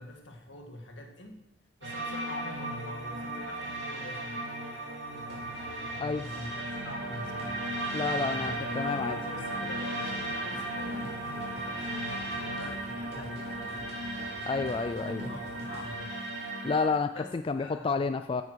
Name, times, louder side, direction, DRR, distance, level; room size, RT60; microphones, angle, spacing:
voice 1, 0.0-1.4 1.8-4.5 6.0-7.7 8.0-8.8 9.1-14.0 15.0-16.2 17.1-18.0, left 2 dB, 75° left, 2 dB, 1.9 m, -45 dB
sound 1, 1.8-16.9, right 1 dB, 85° right, 3.4 m, -36 dB
sound 2, 5.1-16.0, right 1 dB, 60° right, 3.3 m, -47 dB
voice 2, 7.9-9.2 14.5-15.3 16.6-18.4, left 4 dB, 30° left, 8 dB, 0.3 m, -30 dB
9.6 x 7.2 x 6.3 m, 0.93 s
head